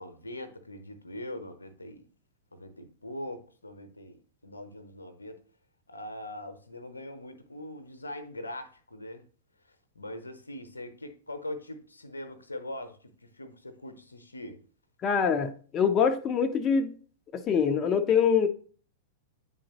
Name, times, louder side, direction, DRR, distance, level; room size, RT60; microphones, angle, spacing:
voice 1, 0.0-2.1 2.5-5.4 5.9-9.2 10.0-13.0 13.4-14.6, left 1 dB, 85° left, 0.8 m, -41 dB
voice 2, 15.0-16.9 17.3-18.5, left 6 dB, 30° left, 0.6 m, -24 dB
9.1 x 3.8 x 2.8 m
figure-of-eight pair, 100°, 0 cm